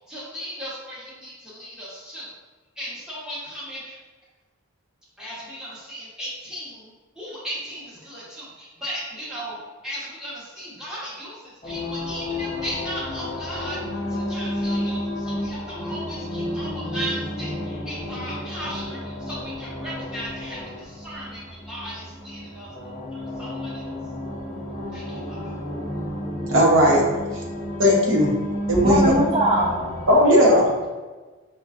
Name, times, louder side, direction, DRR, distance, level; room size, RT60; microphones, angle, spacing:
voice 1, 0.1-2.3 2.8-4.0 5.2-6.9 7.2-22.7 23.1-23.9 24.9-25.6, equal, 5° right, -8 dB, 0.9 m, -36 dB
sound 1, 11.6-30.1, left 1 dB, 35° left, 0.6 m, -31 dB
voice 2, 26.5-27.0 27.8-28.3 28.7-29.1 30.1-30.9, equal, 60° right, -2 dB, 0.8 m, -17 dB
voice 3, 28.7-30.1, right 1 dB, 20° right, -4 dB, 0.4 m, -22 dB
5.5 x 2.2 x 2.4 m, 1.3 s
head